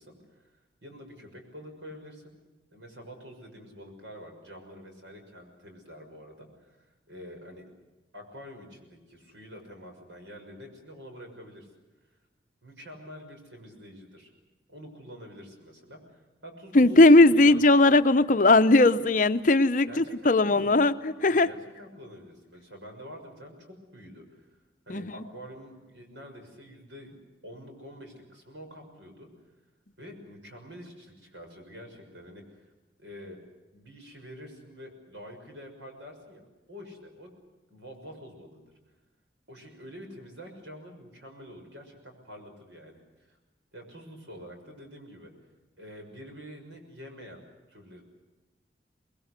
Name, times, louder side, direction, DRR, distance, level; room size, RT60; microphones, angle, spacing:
voice 1, 0.0-2.3 2.7-7.6 8.1-11.7 12.6-14.3 14.7-17.6 19.9-20.8 21.2-24.5 24.9-27.1 27.4-29.3 30.0-32.7 33.0-33.4 33.7-37.3 37.7-38.6 39.5-43.0 43.3-43.4 43.7-45.3 45.8-47.4 47.7-48.0, equal, 85° right, 4 dB, 6.4 m, -47 dB
voice 2, 16.7-21.5 24.9-25.1, left 2 dB, 45° left, 11 dB, 0.7 m, -19 dB
25.5 x 20.5 x 8.2 m, 1.1 s
head